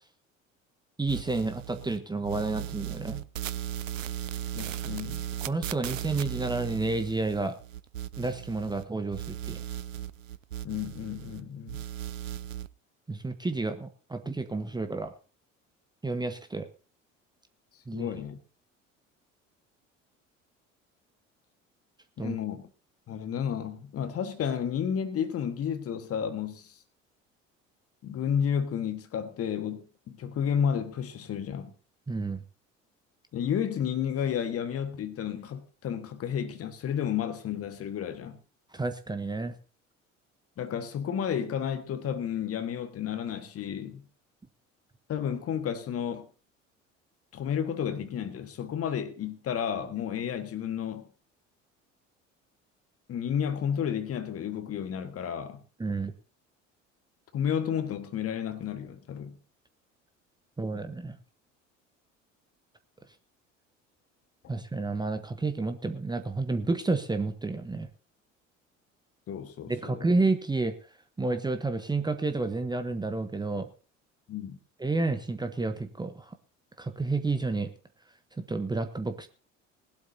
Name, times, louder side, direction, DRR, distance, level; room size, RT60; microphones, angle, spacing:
voice 1, 1.0-3.3 5.4-7.6 8.2-9.6 13.1-15.1 16.0-16.7 17.9-18.1 22.2-22.4 32.1-32.4 38.7-39.5 55.8-56.1 60.6-61.2 64.5-67.9 69.7-70.7 71.2-73.7 74.8-76.3 76.8-77.7 78.4-79.3, right 3 dB, 10° right, 1.0 m, -30 dB
sound 1, 1.1-2.0 2.2-8.8 9.1-11.4 11.7-12.7, right 11 dB, 80° right, 0.5 m, -37 dB
voice 2, 4.5-5.2 10.6-11.8 17.9-18.4 22.2-22.6 23.1-26.7 28.0-31.7 33.3-38.4 40.6-44.0 45.1-46.3 47.3-51.1 53.1-55.6 57.3-59.4 69.3-70.1 74.3-74.6, left 8 dB, 40° left, 1.6 m, -32 dB
20.0 x 12.0 x 2.8 m
figure-of-eight pair, 60°, 38 cm